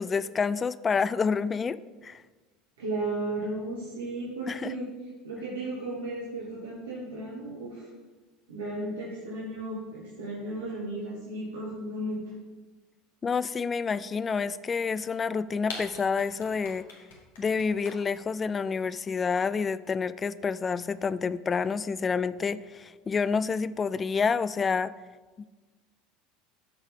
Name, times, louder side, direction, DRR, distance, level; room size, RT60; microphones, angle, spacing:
voice 1, 0.0-1.8 2.0-2.2 4.5-4.7 13.2-16.9 17.4-24.9 25.4-25.5, left 5 dB, 25° left, 17 dB, 0.3 m, -28 dB
voice 2, 2.8-7.9 8.5-12.3, right 2 dB, 75° right, -6 dB, 1.6 m, -35 dB
sound 1, 15.7-18.2, left 4 dB, 70° left, 1.7 m, -40 dB
13.0 x 4.5 x 3.7 m, 1.3 s
figure-of-eight pair, 70°, 0 cm